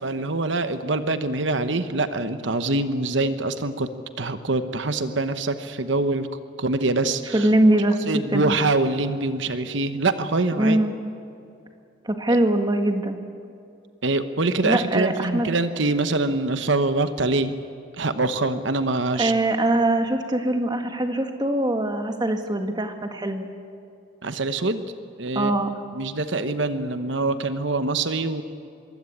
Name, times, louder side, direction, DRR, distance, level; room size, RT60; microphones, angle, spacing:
voice 1, 0.0-3.9 4.2-6.3 6.6-7.5 8.1-10.8 12.3-12.4 14.0-17.5 18.0-19.3 24.2-24.8 25.2-25.5 25.9-28.4, right 2 dB, 65° right, 10 dB, 1.1 m, -24 dB
voice 2, 7.3-8.5 10.6-10.9 12.0-13.2 14.6-15.5 19.2-23.5 25.3-25.8, right 1 dB, 20° right, 6 dB, 1.8 m, -22 dB
24.0 x 23.0 x 8.7 m, 2.6 s
head